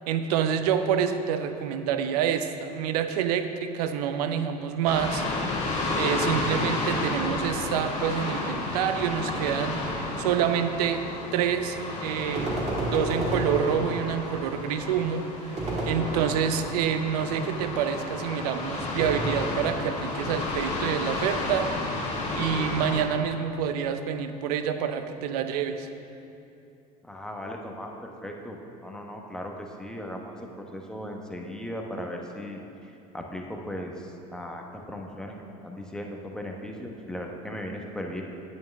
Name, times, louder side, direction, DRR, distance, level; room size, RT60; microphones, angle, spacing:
voice 1, 0.1-5.2 6.0-9.8 10.2-11.0 11.3-12.7 12.9-15.6 15.9-21.9 22.3-25.9, right 8 dB, 75° right, 9 dB, 0.6 m, -27 dB
sound 1, 4.8-23.0, left 2 dB, 35° left, 2.1 m, -32 dB
sound 2, 12.3-14.3 15.6-16.8 19.0-20.0, right 1 dB, 35° right, 2.1 m, -31 dB
voice 2, 27.0-35.4 35.6-38.2, equal, 5° left, 1 dB, 1.2 m, -37 dB
9.2 x 8.6 x 3.5 m, 2.8 s
hypercardioid pair, 70°, 20 cm